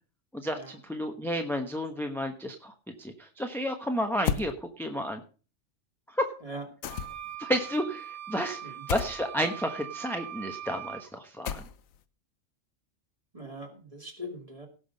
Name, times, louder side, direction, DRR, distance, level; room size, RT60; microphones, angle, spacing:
voice 1, 0.3-5.2 6.1-6.3 7.4-11.6, equal, ahead, 4 dB, 1.0 m, -32 dB
sound 1, 4.2-4.5 6.8-7.4 8.9-9.2 11.4-12.0, left 9 dB, 85° left, 1.2 m, -32 dB
sound 2, 6.9-11.0, right 11 dB, 60° right, 1.4 m, -41 dB
voice 2, 13.3-14.7, equal, 25° right, 3 dB, 2.7 m, -41 dB
17.5 x 6.1 x 5.3 m, 0.36 s
omnidirectional pair, 1.4 m